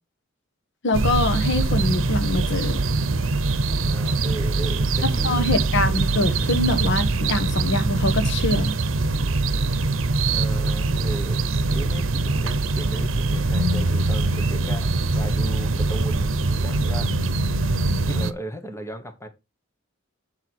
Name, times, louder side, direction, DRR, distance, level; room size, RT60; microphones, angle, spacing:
voice 1, 0.8-2.8 5.0-8.7, left 2 dB, 65° left, 1.2 m, -24 dB
sound 1, 0.9-18.3, right 3 dB, 75° right, 0.9 m, -23 dB
voice 2, 3.8-5.5 10.3-17.1 18.0-19.3, right 1 dB, 15° left, 1.3 m, -36 dB
7.7 x 6.3 x 4.6 m
head